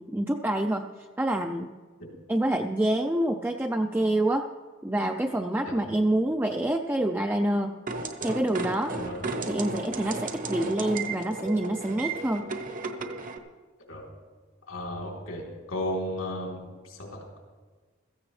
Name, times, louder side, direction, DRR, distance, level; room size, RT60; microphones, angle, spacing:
voice 1, 0.0-1.7 2.3-4.5 4.8-7.7 8.2-9.0 9.5-12.5, right 1 dB, 10° right, 4 dB, 0.4 m, -27 dB
sound 1, 7.9-13.4, right 3 dB, 40° right, 1.0 m, -34 dB
voice 2, 14.7-15.4 15.7-17.4, left 1 dB, 85° left, -1 dB, 3.5 m, -34 dB
16.0 x 14.5 x 3.3 m, 1.4 s
head